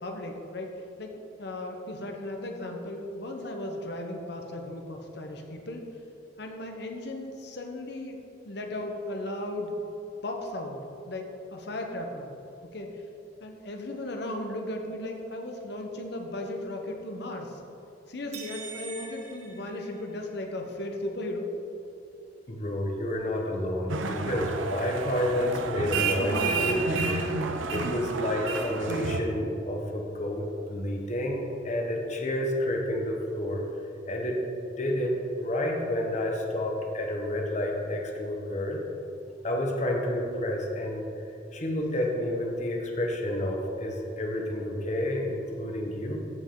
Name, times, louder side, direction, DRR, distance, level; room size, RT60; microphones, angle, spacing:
voice 1, 0.0-5.9 6.4-8.2 8.4-9.8 10.2-12.3 12.6-13.0 13.4-17.6 18.1-21.5, left 1 dB, 60° left, 3 dB, 1.0 m, -36 dB
sound 1, 18.3-20.5, right 5 dB, 35° right, 1.6 m, -43 dB
voice 2, 22.5-27.3 27.7-33.6 34.1-34.4 34.8-38.8 39.4-41.1 41.5-46.2, left 1 dB, 40° left, 1 dB, 1.1 m, -30 dB
sound 2, 23.9-29.2, right 4 dB, 90° right, 0.7 m, -30 dB
14.0 x 5.5 x 3.9 m, 2.8 s
head